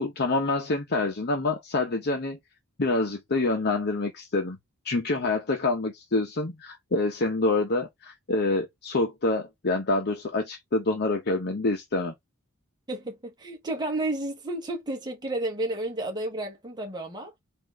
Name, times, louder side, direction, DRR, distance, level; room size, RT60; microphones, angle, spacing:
voice 1, 0.0-2.4 2.8-4.6 4.8-12.1, left 2 dB, 50° left, 0.8 m, -26 dB
voice 2, 12.9-17.3, right 2 dB, 20° right, 1.1 m, -31 dB
4.3 x 2.6 x 4.5 m
head